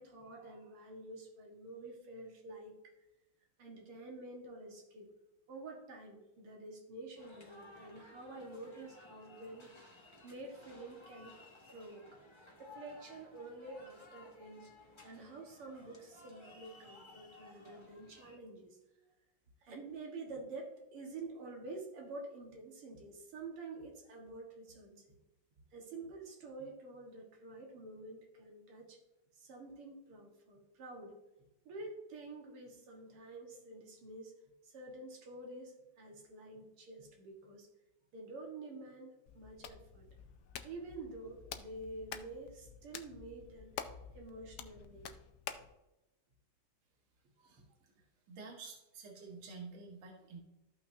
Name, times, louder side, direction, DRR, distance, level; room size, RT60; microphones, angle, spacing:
voice 1, 0.0-2.9 3.6-5.1 5.5-9.7 10.2-11.4 11.7-12.1 12.6-14.7 15.0-18.8 19.6-25.2 25.7-29.0 29.3-31.2 31.7-34.3 34.6-37.7 38.1-40.1 40.6-43.8 44.1-45.1 47.5-47.7, right 2 dB, 90° right, 0 dB, 2.6 m, -49 dB
sound 1, 7.2-18.4, left 2 dB, 15° left, 1.3 m, -58 dB
Hands, 39.3-45.7, left 8 dB, 75° left, 0.8 m, -49 dB
voice 2, 48.3-50.4, right 4 dB, 65° right, 0 dB, 2.2 m, -49 dB
14.5 x 5.8 x 2.7 m, 0.97 s
omnidirectional pair, 2.4 m